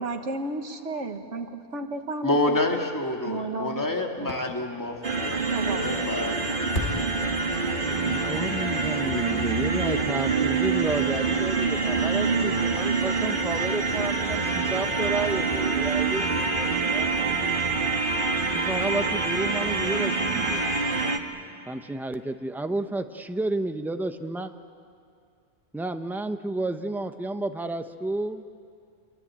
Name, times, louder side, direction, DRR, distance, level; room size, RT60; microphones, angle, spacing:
voice 1, 0.0-2.8 3.3-3.9 4.2-4.3 5.5-6.1, right 2 dB, 75° right, 5 dB, 1.9 m, -33 dB
voice 2, 2.2-6.7, left 2 dB, 15° left, 1 dB, 2.2 m, -28 dB
Fireworks, 4.2-10.0 10.4-10.5, left 1 dB, 70° left, 2.9 m, -38 dB
sound 1, 5.0-21.2, right 4 dB, 45° right, 1.8 m, -26 dB
voice 3, 7.6-17.2 18.5-20.6 21.7-24.5 25.7-28.4, right 2 dB, ahead, 7 dB, 0.7 m, -31 dB
27.0 x 23.5 x 8.7 m, 2.3 s
omnidirectional pair, 1.3 m